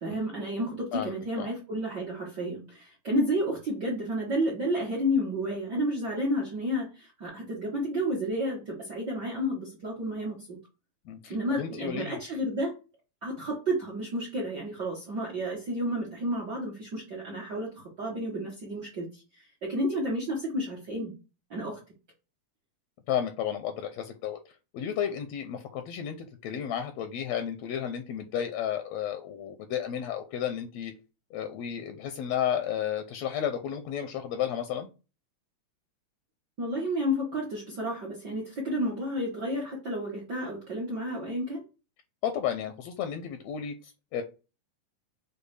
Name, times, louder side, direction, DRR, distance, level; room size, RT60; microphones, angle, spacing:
voice 1, 0.0-10.6 11.3-12.7 13.2-21.1 21.5-21.8 36.6-41.6, equal, 60° right, -3 dB, 1.1 m, -31 dB
voice 2, 0.9-1.5 11.1-12.2 23.1-24.4 24.7-30.9 31.3-34.9 42.2-44.2, left 9 dB, 80° left, 6 dB, 1.6 m, -32 dB
6.7 x 2.3 x 3.2 m, 0.30 s
omnidirectional pair, 3.4 m